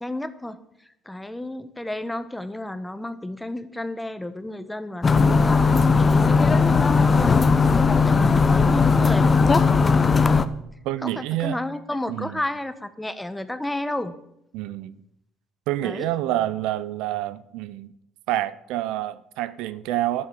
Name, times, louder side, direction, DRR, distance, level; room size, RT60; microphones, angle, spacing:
voice 1, 0.0-7.5 8.0-9.5 11.0-14.2 15.8-16.1, left 1 dB, 10° left, 1.1 m, -32 dB
sound 1, 5.0-10.5, left 4 dB, 30° left, 0.9 m, -17 dB
voice 2, 10.8-11.6 12.1-12.4 14.5-15.0 15.7-17.9 18.3-20.3, right 14 dB, 85° right, 0.6 m, -27 dB
11.0 x 7.8 x 7.4 m
supercardioid pair, 80°, 0 cm